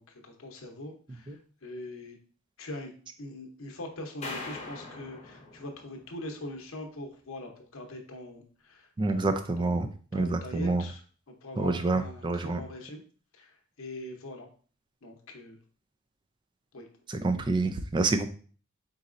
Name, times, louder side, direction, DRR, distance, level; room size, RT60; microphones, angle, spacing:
voice 1, 0.0-2.2 2.6-2.9 3.2-9.8 10.1-11.0 11.3-13.0 13.3-14.5 15.0-15.6 16.7-16.9, left 1 dB, 65° left, 3 dB, 0.8 m, -42 dB
sound 1, 4.2-6.5, left 2 dB, 30° left, 0.8 m, -42 dB
voice 2, 9.0-9.9 10.1-10.8 11.6-12.6 17.1-18.3, right 3 dB, 20° right, 8 dB, 0.3 m, -27 dB
4.1 x 4.0 x 2.5 m, 0.41 s
head